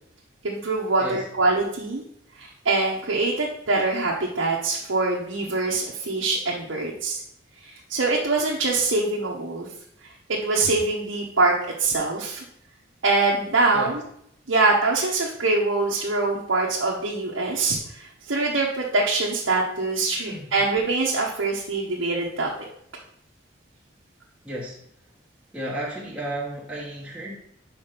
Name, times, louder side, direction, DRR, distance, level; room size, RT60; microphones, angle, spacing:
voice 1, 0.4-2.0 2.4-7.2 7.6-9.7 10.3-11.5 11.8-12.4 13.0-14.0 14.5-22.5, right 3 dB, 90° right, -3 dB, 1.1 m, -24 dB
voice 2, 20.2-20.5 24.4-24.8 25.5-27.4, right 1 dB, 5° right, -7 dB, 1.1 m, -33 dB
5.2 x 5.0 x 5.8 m, 0.70 s
head